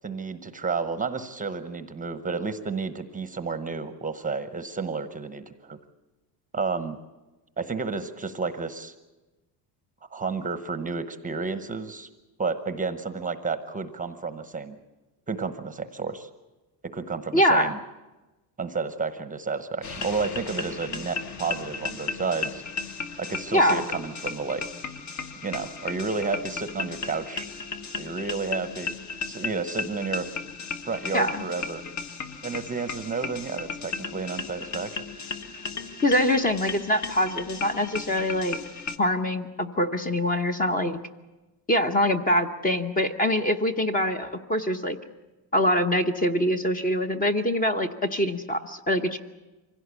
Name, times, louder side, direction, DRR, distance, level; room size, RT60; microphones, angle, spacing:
voice 1, 0.0-5.8 6.5-7.0 7.6-8.9 10.1-12.1 12.4-14.8 15.3-16.3 16.9-17.8 18.6-22.6 23.2-24.6 25.4-27.5 28.0-28.9 29.3-30.3 30.9-31.8 32.4-35.0, right 4 dB, 15° right, 11 dB, 0.9 m, -31 dB
voice 2, 17.3-17.7 23.5-23.8 31.1-31.5 36.0-38.6 39.0-41.0 41.7-45.0 45.5-49.2, equal, 20° left, 7 dB, 0.9 m, -24 dB
sound 1, 19.8-39.0, left 4 dB, 40° left, 1.4 m, -35 dB
24.5 x 16.5 x 8.3 m, 1.1 s
cardioid pair, 155°, 45 cm